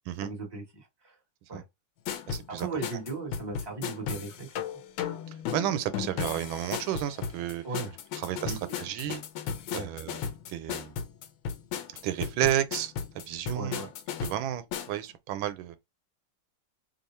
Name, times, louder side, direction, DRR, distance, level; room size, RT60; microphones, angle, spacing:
voice 1, 0.2-1.2 1.5-1.6 2.5-4.5 7.6-7.9 8.4-8.8 9.7-9.9 13.5-13.9, right 3 dB, 15° right, 1.3 m, -37 dB
sound 1, 2.1-15.0, left 8 dB, 85° left, 1.4 m, -35 dB
voice 2, 2.3-2.7 5.5-7.6 8.2-8.5 8.8-9.2 9.7-10.2 10.5-10.9 12.0-13.8 14.2-15.8, right 11 dB, 90° right, 1.4 m, -31 dB
3.4 x 2.4 x 4.2 m
omnidirectional pair, 2.1 m